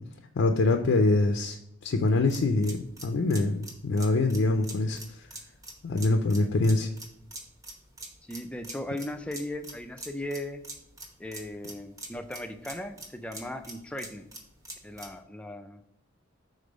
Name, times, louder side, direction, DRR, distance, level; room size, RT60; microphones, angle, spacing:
voice 1, 0.3-5.3 5.8-6.9, left 2 dB, 65° left, 5 dB, 0.4 m, -25 dB
sound 1, 2.3-15.2, right 2 dB, 15° right, 0.9 m, -45 dB
voice 2, 8.2-10.6 11.2-14.3 14.8-15.9, left 1 dB, 5° left, 7 dB, 0.4 m, -37 dB
5.3 x 3.7 x 5.0 m, 0.79 s
head